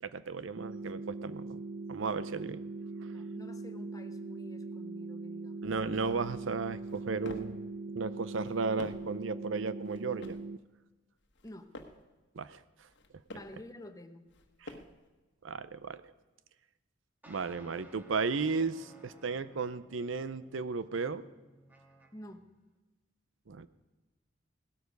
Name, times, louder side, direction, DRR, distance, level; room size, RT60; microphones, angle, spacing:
voice 1, 0.0-1.6 1.9-2.6 5.6-7.6 7.9-10.4 12.4-12.6 14.6-14.7 15.4-16.0 17.3-21.2 23.5-23.7, right 4 dB, 85° right, 15 dB, 0.6 m, -34 dB
sound 1, 0.6-10.6, right 3 dB, 45° right, 0.4 m, -41 dB
voice 2, 3.1-5.7 11.4-11.7 13.3-14.2 22.1-22.5, left 1 dB, 20° left, 8 dB, 1.0 m, -49 dB
sound 2, 6.8-7.6 8.3-9.2 9.8-10.5 11.2-12.1 12.8-13.6 14.3-15.1, left 1 dB, 65° left, 1.4 m, -49 dB
sound 3, 17.2-22.4, equal, 10° right, 1.6 m, -58 dB
17.5 x 13.0 x 5.3 m, 1.2 s
head